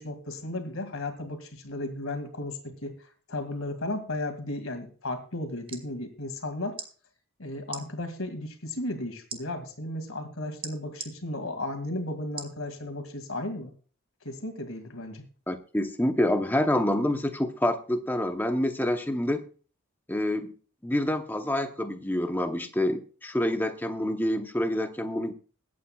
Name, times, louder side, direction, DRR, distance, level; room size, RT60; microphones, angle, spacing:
voice 1, 0.0-2.9 3.3-6.8 7.4-13.7 14.2-15.2, left 1 dB, 70° left, 8 dB, 2.2 m, -34 dB
sound 1, 5.4-5.9 6.7-6.9 7.7-7.8 9.3-9.4 10.6-11.1 12.4-12.6 13.2-13.3, right 5 dB, 25° right, 1.1 m, -38 dB
voice 2, 15.5-19.4 20.1-20.5 20.8-25.3, left 1 dB, 10° left, 6 dB, 0.8 m, -27 dB
21.5 x 8.6 x 2.3 m, 0.40 s
head